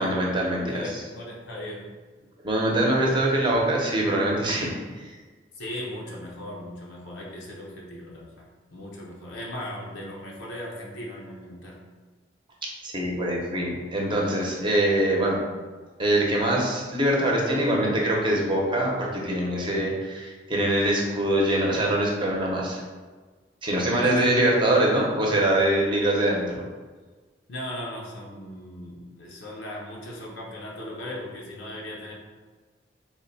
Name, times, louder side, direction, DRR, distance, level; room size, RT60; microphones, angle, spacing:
voice 1, 0.0-0.6 2.4-4.7 5.0-5.2 12.8-15.4 16.0-22.8 23.6-26.6, right 1 dB, 25° right, -2 dB, 0.7 m, -23 dB
voice 2, 0.5-1.9 5.5-11.8 23.9-24.7 27.5-32.1, left 1 dB, 85° left, -3 dB, 0.7 m, -38 dB
3.5 x 2.2 x 4.0 m, 1.4 s
head